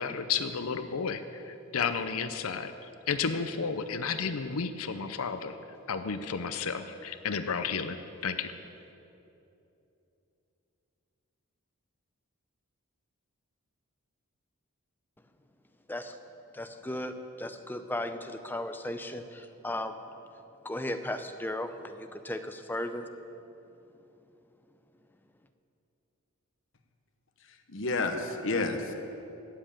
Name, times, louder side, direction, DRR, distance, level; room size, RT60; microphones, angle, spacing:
voice 1, 0.0-2.7 3.1-5.6 5.9-8.5, left 5 dB, 75° left, 9 dB, 0.6 m, -32 dB
voice 2, 16.5-20.0 20.6-23.1, left 1 dB, 10° left, 8 dB, 0.5 m, -36 dB
voice 3, 27.5-28.9, left 3 dB, 60° left, 6 dB, 1.1 m, -30 dB
13.0 x 7.8 x 8.8 m, 2.9 s
head